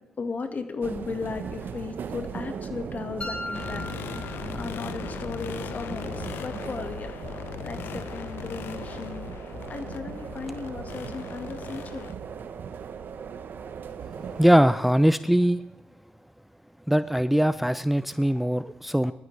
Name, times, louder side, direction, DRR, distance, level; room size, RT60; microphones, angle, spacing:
voice 1, 0.2-3.9 4.2-7.1 7.6-9.3 9.7-12.1, left 4 dB, 45° left, 7 dB, 1.7 m, -36 dB
sound 1, 0.8-14.6, right 7 dB, 60° right, 0.9 m, -38 dB
sound 2, 3.2-5.2, left 1 dB, 30° left, 1.9 m, -38 dB
sound 3, 3.5-12.1, left 8 dB, 75° left, 0.6 m, -39 dB
voice 2, 14.4-15.6 16.9-19.1, equal, 5° right, 13 dB, 0.5 m, -21 dB
20.5 x 12.5 x 3.3 m, 0.91 s
supercardioid pair, 55°, 4 cm